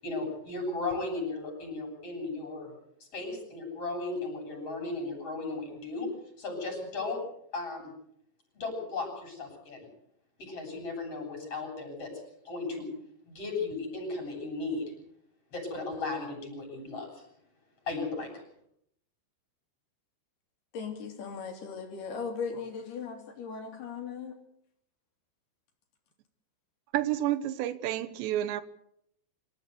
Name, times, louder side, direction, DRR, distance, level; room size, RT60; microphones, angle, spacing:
voice 1, 0.0-2.7 3.0-6.1 6.4-7.2 7.5-7.9 8.5-9.9 10.4-12.1 12.4-12.9 13.3-14.8 15.5-17.3 17.8-18.3, left 3 dB, 35° left, 8.4 m, -35 dB
voice 2, 20.7-24.3, left 5 dB, 65° left, 4.5 m, -38 dB
voice 3, 26.9-28.6, right 13 dB, 80° right, 3.2 m, -30 dB
26.0 x 14.0 x 8.3 m
omnidirectional pair, 5.0 m